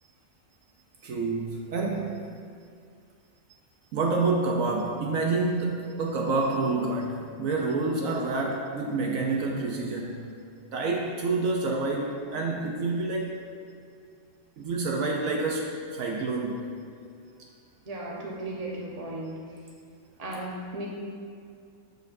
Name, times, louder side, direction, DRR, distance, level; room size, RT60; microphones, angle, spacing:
voice 1, 1.0-2.3 3.9-10.2 10.7-13.3 14.6-16.7, right 3 dB, 70° right, -1 dB, 1.1 m, -28 dB
voice 2, 17.8-19.4 20.2-20.9, right 1 dB, 30° right, -3 dB, 1.0 m, -35 dB
13.0 x 4.5 x 2.6 m, 2.3 s
omnidirectional pair, 1.5 m